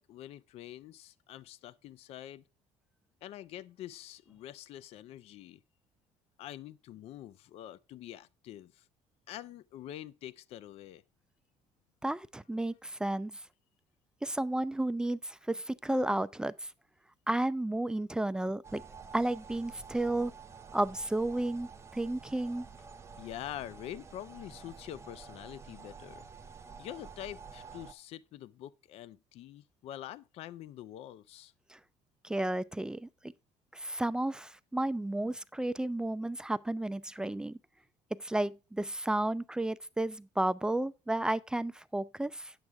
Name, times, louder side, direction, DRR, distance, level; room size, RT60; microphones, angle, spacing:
voice 1, 0.0-2.4 3.2-5.6 6.4-8.8 9.3-11.0 23.2-26.2 26.8-31.5, left 12 dB, 60° left, 0.5 m, -45 dB
voice 2, 12.0-13.4 14.2-16.7 17.3-18.8 19.1-20.3 20.7-22.7 31.7-31.8 32.2-33.1 33.7-37.6 38.1-42.5, right 1 dB, 5° right, 0.4 m, -32 dB
sound 1, 18.6-27.9, right 5 dB, 25° right, 0.8 m, -50 dB
9.6 x 7.8 x 3.4 m
cardioid pair, 130°, 12 cm